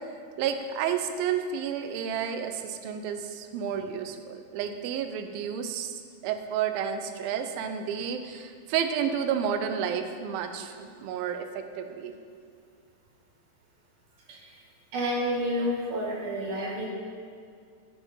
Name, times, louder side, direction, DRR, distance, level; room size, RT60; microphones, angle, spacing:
voice 1, 0.4-12.2, right 8 dB, 85° right, 7 dB, 2.4 m, -31 dB
voice 2, 14.9-16.9, equal, 70° right, -3 dB, 2.4 m, -29 dB
9.5 x 3.5 x 5.4 m, 2.2 s
omnidirectional pair, 4.2 m